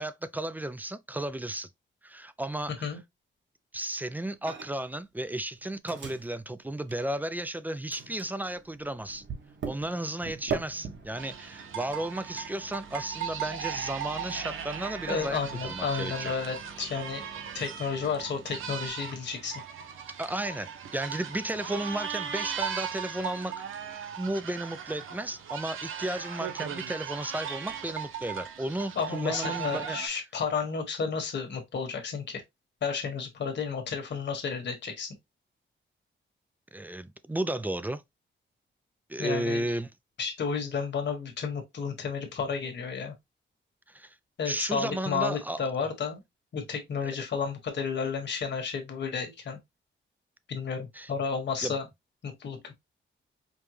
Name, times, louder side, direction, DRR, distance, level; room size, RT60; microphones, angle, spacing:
voice 1, 0.0-1.7 2.0-2.9 3.7-9.2 9.7-16.3 20.2-23.5 24.2-30.0 36.7-38.0 39.1-39.9 43.9-44.1 44.4-45.6 50.9-51.1 51.6-51.8, right 1 dB, 10° right, 0.3 m, -34 dB
Microwave oven, 4.5-5.0 5.2-7.5 7.9-18.9, right 5 dB, 65° right, 1.1 m, -43 dB
sound 1, 11.2-30.1, right 8 dB, 90° right, 0.6 m, -38 dB
voice 2, 15.1-17.2 17.5-19.6 29.0-32.4 32.8-35.1 39.2-39.6 40.2-43.1 44.4-46.2 46.5-49.6 50.5-51.9 52.2-52.7, left 5 dB, 60° left, 1.4 m, -32 dB
5.2 x 2.2 x 3.1 m
wide cardioid pair, 120°, 20 cm